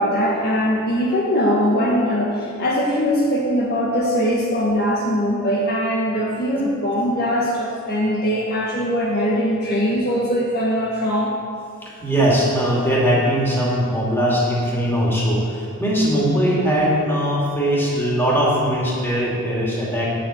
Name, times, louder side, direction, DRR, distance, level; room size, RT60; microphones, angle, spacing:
voice 1, 0.0-11.3, equal, 50° left, -3 dB, 1.4 m, -21 dB
voice 2, 11.8-20.1, equal, 10° left, -5 dB, 2.6 m, -20 dB
8.7 x 8.0 x 7.8 m, 2.5 s
head